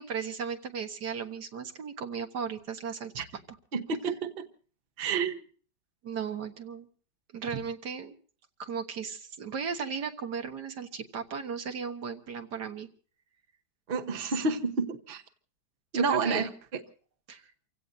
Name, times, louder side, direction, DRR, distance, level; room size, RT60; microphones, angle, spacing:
voice 1, 0.0-3.4 6.0-6.9 7.3-8.1 8.6-12.9 14.2-14.3 15.9-16.5 17.3-17.5, right 6 dB, 85° right, 5 dB, 2.0 m, -36 dB
voice 2, 3.7-4.5 5.0-5.4 13.9-15.2 15.9-16.5, right 4 dB, 40° right, 8 dB, 1.2 m, -29 dB
29.5 x 16.5 x 2.6 m, 0.43 s
omnidirectional pair, 1.8 m